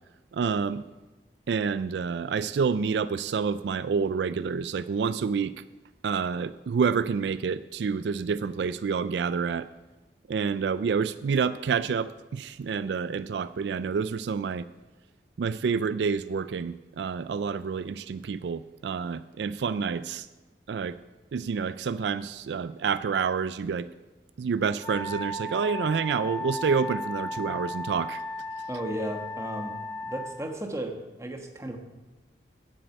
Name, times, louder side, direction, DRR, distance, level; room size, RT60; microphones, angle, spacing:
voice 1, 0.3-0.8 1.5-5.6 6.0-9.7 10.3-14.7 15.4-20.3 20.7-21.0 21.3-23.9 24.4-28.2, right 5 dB, 75° right, 15 dB, 0.3 m, -28 dB
Wind instrument woodwind instrument, 24.8-30.4, left 1 dB, 15° left, 3.4 m, -35 dB
voice 2, 28.7-29.7 30.0-31.8, right 1 dB, 15° right, 4 dB, 1.3 m, -34 dB
10.5 x 7.7 x 8.1 m, 1.1 s
head